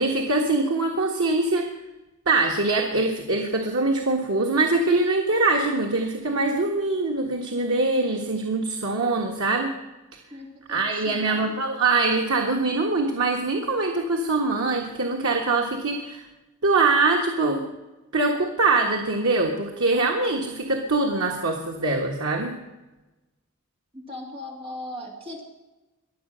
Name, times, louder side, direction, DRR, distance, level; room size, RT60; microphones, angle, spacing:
voice 1, 0.0-1.7 2.3-9.7 10.7-16.2 16.6-17.7 18.1-22.6, right 3 dB, 90° right, 1 dB, 1.5 m, -23 dB
voice 2, 10.3-11.5 23.9-25.4, left 1 dB, 25° right, 0 dB, 2.7 m, -38 dB
22.5 x 7.7 x 6.3 m, 1.1 s
head